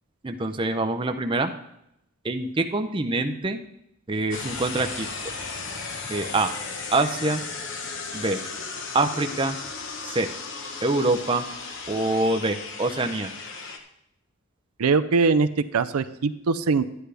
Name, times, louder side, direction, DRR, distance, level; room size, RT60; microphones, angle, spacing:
voice 1, 0.2-1.5 2.2-3.6 4.1-5.1 6.1-6.5 6.9-7.4 8.1-8.4 8.9-9.6 10.0-10.3 10.8-11.4 11.9-13.3, right 2 dB, 25° right, 6 dB, 0.6 m, -25 dB
sound 1, 4.3-13.8, left 4 dB, 55° left, 1.1 m, -35 dB
voice 2, 14.8-16.8, right 4 dB, 80° right, 11 dB, 0.5 m, -22 dB
12.5 x 9.8 x 3.4 m, 0.77 s
head